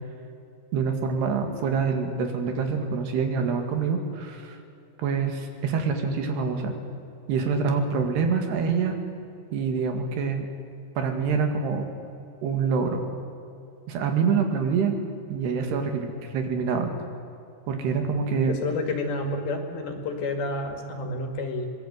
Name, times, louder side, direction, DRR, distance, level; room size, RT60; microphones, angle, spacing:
voice 1, 0.7-4.6 5.0-6.7 7.3-9.0 9.5-10.5 11.0-11.9 12.4-13.0 13.9-15.0 15.3-16.9 17.7-18.5, right 5 dB, 80° right, 5 dB, 4.3 m, -26 dB
voice 2, 18.4-21.7, left 2 dB, 70° left, 5 dB, 4.0 m, -30 dB
25.0 x 21.0 x 8.1 m, 2.6 s
omnidirectional pair, 4.6 m